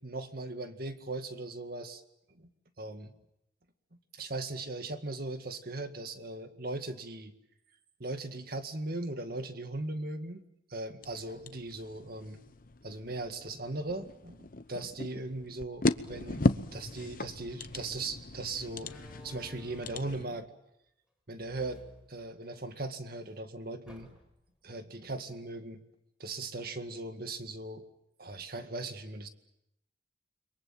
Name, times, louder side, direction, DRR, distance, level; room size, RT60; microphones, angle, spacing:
voice 1, 0.0-2.0 2.3-2.5 2.8-3.1 4.1-7.3 8.0-10.4 10.7-12.4 12.8-18.9 19.2-20.5 21.3-21.8 22.1-24.2 24.6-25.8 26.2-27.8 28.2-29.3, right 2 dB, 55° right, 7 dB, 2.0 m, -38 dB
sound 1, 11.0-20.3, left 2 dB, 50° left, 0.9 m, -36 dB
Slam, 17.7-17.9 18.7-20.3 21.3-22.8 23.1-23.2 23.9-24.5, left 1 dB, 5° right, 5.3 m, -54 dB
29.5 x 23.0 x 7.6 m, 0.83 s
head